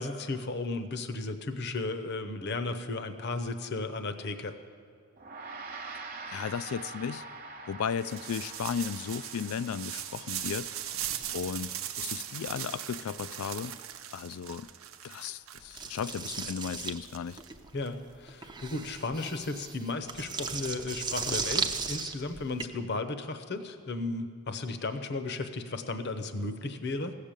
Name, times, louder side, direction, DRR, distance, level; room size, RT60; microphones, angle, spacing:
voice 1, 0.0-4.6 17.7-27.2, left 3 dB, 50° left, 9 dB, 0.8 m, -34 dB
Gong, 5.2-14.7, right 3 dB, 45° right, 1.0 m, -46 dB
voice 2, 6.3-7.2 7.7-10.7 11.3-13.8 14.1-14.7 15.0-17.4, left 7 dB, 80° left, 16 dB, 0.4 m, -35 dB
sound 1, 8.0-17.9, right 10 dB, 70° right, 0.7 m, -39 dB
sound 2, 15.8-22.6, right 5 dB, 20° right, 0.6 m, -36 dB
15.5 x 6.7 x 8.9 m, 2.3 s
head